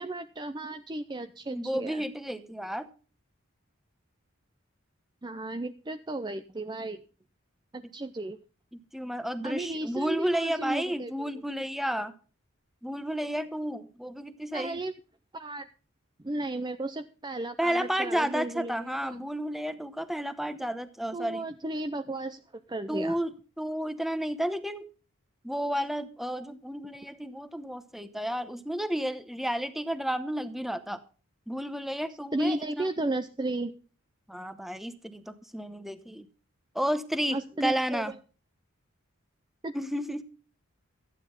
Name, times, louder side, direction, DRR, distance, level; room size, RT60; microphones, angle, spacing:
voice 1, 0.0-2.0 5.2-7.0 7.7-8.4 9.4-11.3 14.5-14.9 15.3-15.7 16.2-19.2 21.1-22.4 22.7-23.2 32.3-33.8 37.3-38.0 39.6-39.7, right 2 dB, 20° right, 9 dB, 0.6 m, -34 dB
voice 2, 1.5-2.9 8.7-12.1 12.8-14.8 17.6-21.4 22.9-24.9 25.4-31.0 31.5-32.9 34.3-36.3 36.7-38.1 39.7-40.2, equal, ahead, 11 dB, 1.0 m, -32 dB
14.5 x 9.9 x 5.3 m, 0.37 s
head